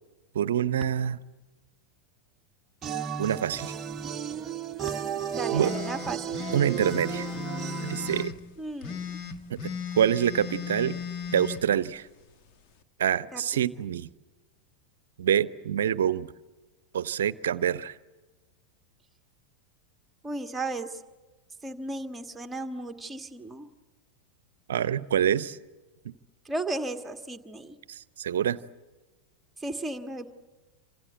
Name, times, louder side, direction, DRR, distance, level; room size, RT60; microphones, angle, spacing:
voice 1, 0.3-1.2 3.2-3.7 5.5-5.7 6.5-7.3 7.8-8.3 9.5-11.0 11.3-12.1 13.0-14.1 15.2-16.3 16.9-18.0 24.7-25.6 26.0-26.1 27.9-28.6, right 9 dB, 60° right, 18 dB, 0.8 m, -26 dB
sound 1, 2.8-8.2, right 8 dB, 25° right, 1.0 m, -34 dB
voice 2, 5.3-6.4 8.6-9.2 13.3-13.4 20.2-20.9 21.6-23.7 26.4-27.8 29.6-30.3, right 2 dB, 10° right, 6 dB, 1.7 m, -35 dB
sound 2, 5.6-8.4 8.8-11.6, left 7 dB, 40° left, 1.6 m, -36 dB
28.0 x 26.0 x 8.0 m, 1.2 s
figure-of-eight pair, 90°, 0 cm